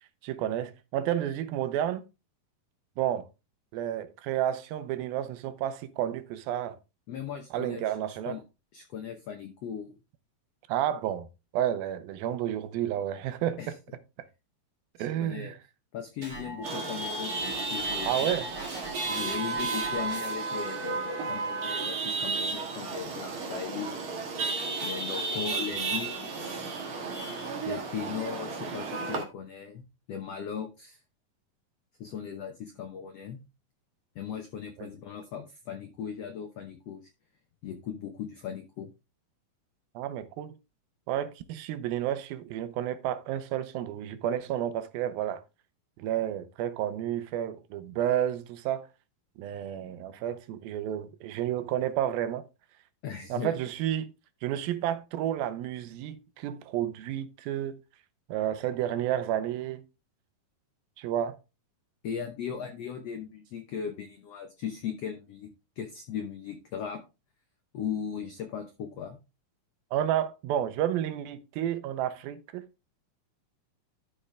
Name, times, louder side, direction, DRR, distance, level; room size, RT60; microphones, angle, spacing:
voice 1, 0.2-2.0 3.0-3.3 3.7-6.8 7.5-8.4 10.7-11.3 11.5-13.6 15.0-15.6 18.0-18.5 34.8-34.9 40.0-40.5 41.1-45.4 46.0-48.9 49.4-52.4 53.3-54.1 54.4-57.8 58.3-59.8 61.0-61.4 69.9-72.6, right 11 dB, 80° right, 2.6 m, -31 dB
voice 2, 7.1-8.0 8.2-8.4 8.7-10.0 13.6-13.7 15.0-15.5 15.9-18.4 19.0-24.1 24.8-26.7 27.6-31.0 32.0-33.4 34.1-37.1 37.6-38.9 53.0-53.6 62.0-67.0 67.7-69.2, left 7 dB, 90° left, 1.4 m, -38 dB
sound 1, 16.2-20.6, right 1 dB, 25° right, 3.4 m, -42 dB
Chatter / Vehicle horn car horn honking / Traffic noise roadway noise, 16.6-29.2, right 4 dB, 45° right, 1.9 m, -33 dB
12.0 x 5.1 x 3.3 m
omnidirectional pair, 4.2 m